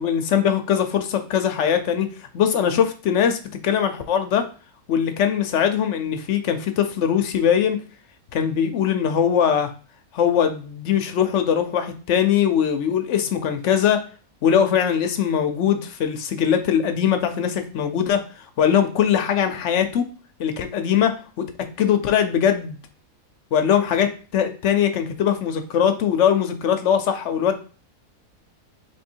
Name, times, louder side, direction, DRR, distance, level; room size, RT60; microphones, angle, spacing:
voice 1, 0.0-2.1 2.3-3.4 3.6-4.5 4.9-7.8 8.3-9.7 10.1-14.1 14.4-18.2 18.6-20.1 20.4-21.5 21.8-22.8 23.5-27.6, left 8 dB, 65° left, 7 dB, 0.9 m, -21 dB
3.6 x 3.3 x 4.4 m, 0.37 s
omnidirectional pair, 1.5 m